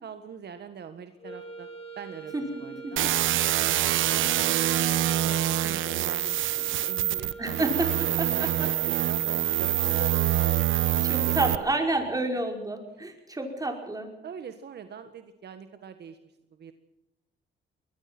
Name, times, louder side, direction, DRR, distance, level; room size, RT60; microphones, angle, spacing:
voice 1, 0.0-1.7 2.0-3.0 4.8-10.7 10.9-11.8 14.2-16.7, right 7 dB, 55° right, 9 dB, 1.6 m, -44 dB
sound 1, 1.2-12.1, right 4 dB, 30° left, 6.7 m, -44 dB
sound 2, 3.0-11.6, right 13 dB, 80° right, 1.0 m, -25 dB
voice 2, 7.4-7.9 8.2-8.7 11.0-14.1, right 2 dB, 20° right, 4 dB, 5.3 m, -29 dB
22.0 x 20.5 x 6.1 m, 0.94 s
cardioid pair, 90°, 20 cm